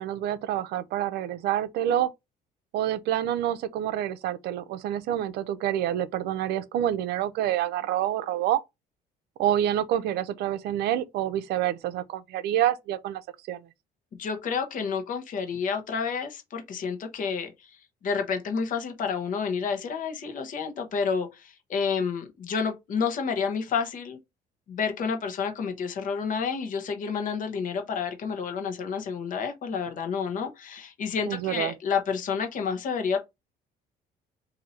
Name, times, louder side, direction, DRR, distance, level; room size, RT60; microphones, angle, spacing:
voice 1, 0.0-2.1 2.7-8.6 9.4-13.2 13.5-13.6 31.3-31.7, right 11 dB, 75° right, 0.5 m, -27 dB
voice 2, 14.2-17.7 18.0-24.2 24.7-33.2, left 6 dB, 50° left, 1.0 m, -30 dB
2.7 x 2.7 x 4.3 m
cardioid pair, 110°, 17 cm